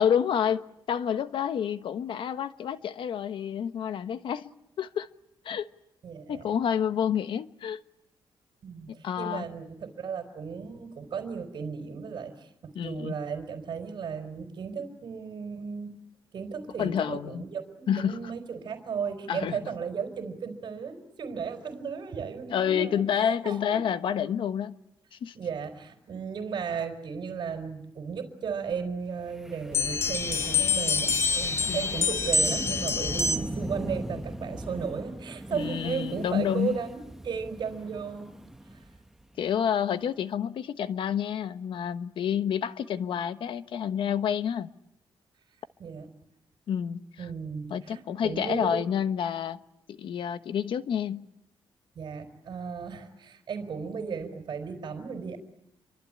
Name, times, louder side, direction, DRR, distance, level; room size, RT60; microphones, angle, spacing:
voice 1, 0.0-4.5 4.8-5.1 5.4-5.7 6.3-7.8 9.0-9.5 12.7-13.1 16.8-17.4 17.9-18.2 19.3-19.6 22.5-24.8 25.1-25.3 31.6-32.0 35.5-36.8 39.4-44.7 46.7-47.3 47.7-49.6 49.9-51.2, left 8 dB, 65° left, 1.1 m, -29 dB
voice 2, 6.0-6.5 8.6-12.5 12.8-15.9 16.3-23.8 25.3-37.0 37.2-38.3 38.7-38.8 45.8-46.1 47.2-48.8 52.0-55.4, right 6 dB, 50° right, 4.2 m, -35 dB
Wind, 29.3-39.6, right 1 dB, 5° right, 1.0 m, -40 dB
sound 1, 29.7-33.7, left 4 dB, 30° left, 2.0 m, -26 dB
28.0 x 24.5 x 8.7 m
wide cardioid pair, 150°, 9 cm